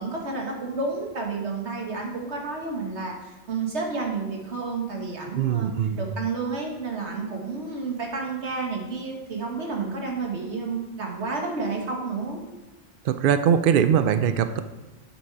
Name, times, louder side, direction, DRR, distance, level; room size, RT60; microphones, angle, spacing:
voice 1, 0.0-5.7 6.0-12.4, right 4 dB, 90° right, 0 dB, 1.9 m, -30 dB
voice 2, 5.3-6.0 13.0-14.6, right 8 dB, 60° right, 10 dB, 0.6 m, -21 dB
8.0 x 7.1 x 4.7 m, 1.1 s
omnidirectional pair, 1.1 m